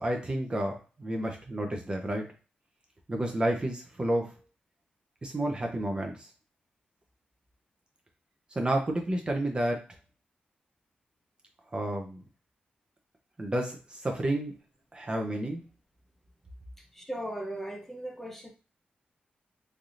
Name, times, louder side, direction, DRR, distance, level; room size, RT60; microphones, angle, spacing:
voice 1, 0.0-2.3 3.1-4.3 5.2-6.3 8.5-9.8 11.7-12.2 13.4-14.5 14.9-15.6, right 1 dB, 30° right, 2 dB, 0.7 m, -30 dB
voice 2, 16.9-18.5, right 1 dB, 10° left, 1 dB, 0.7 m, -37 dB
3.3 x 2.7 x 2.5 m, 0.32 s
cardioid pair, 85°, 3 cm